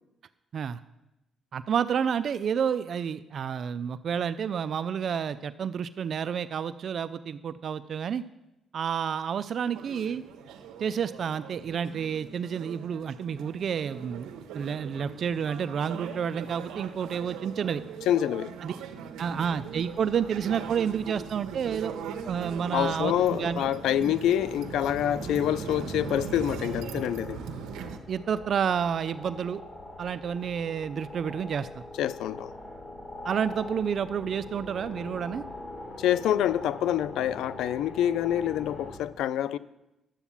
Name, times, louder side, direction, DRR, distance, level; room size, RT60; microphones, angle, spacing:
voice 1, 1.5-8.2 8.7-10.2 10.8-14.3 14.5-17.8 18.6-18.7 19.2-21.9 22.2-23.6 24.1-24.2 28.1-29.6 30.0-31.7 33.2-35.4, right 7 dB, 55° right, 13 dB, 0.4 m, -30 dB
sound 1, 9.7-28.0, right 7 dB, 90° right, 1.1 m, -40 dB
voice 2, 18.1-18.5 22.7-27.4 32.0-32.5 36.0-39.6, left 11 dB, 85° left, 17 dB, 0.4 m, -26 dB
sound 2, 19.3-39.0, left 2 dB, 40° left, 4.4 m, -44 dB
11.5 x 8.1 x 7.2 m, 0.94 s
cardioid pair, 90°, 0 cm